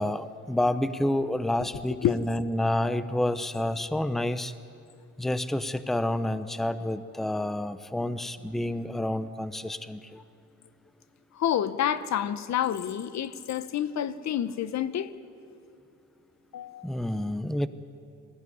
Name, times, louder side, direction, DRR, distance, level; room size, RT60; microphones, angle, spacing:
voice 1, 0.0-4.5 5.2-10.2 16.8-17.7, left 1 dB, ahead, 13 dB, 0.7 m, -29 dB
voice 2, 1.7-2.2 11.3-15.1 16.5-16.9, left 10 dB, 65° left, 15 dB, 0.9 m, -29 dB
21.0 x 15.5 x 9.6 m, 2.5 s
cardioid pair, 90°, 30 cm